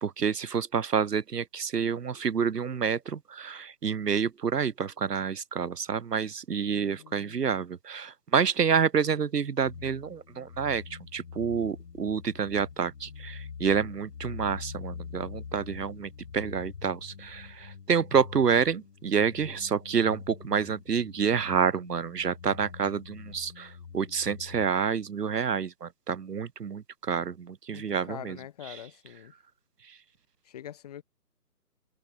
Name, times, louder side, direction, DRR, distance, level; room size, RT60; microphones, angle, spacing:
voice 1, 0.0-28.4, right 6 dB, 80° right, 1.1 m, -28 dB
voice 2, 6.6-7.6 27.7-29.3 30.4-31.0, left 11 dB, 25° left, 3.0 m, -44 dB
sound 1, 9.6-24.7, left 6 dB, 55° left, 1.7 m, -44 dB
figure-of-eight pair, 160°, 47 cm